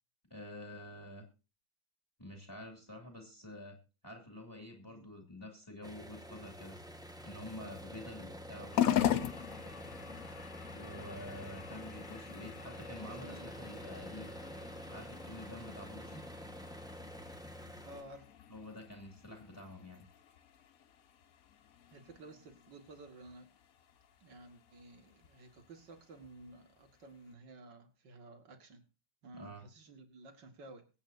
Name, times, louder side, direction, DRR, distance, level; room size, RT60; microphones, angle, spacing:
voice 1, 0.3-1.3 2.2-6.8 7.2-9.4 10.7-14.4 14.9-16.2 18.5-20.0 29.3-29.6, left 1 dB, 10° left, 3 dB, 2.3 m, -48 dB
sound 1, 5.8-18.0, equal, 5° right, 1.0 m, -48 dB
sound 2, 8.7-27.3, left 11 dB, 60° left, 1.0 m, -41 dB
voice 2, 13.0-13.5 17.9-18.3 21.9-23.5 24.2-28.8 29.2-30.9, right 2 dB, 70° right, 6 dB, 2.5 m, -53 dB
23.0 x 8.8 x 2.7 m, 0.32 s
omnidirectional pair, 2.0 m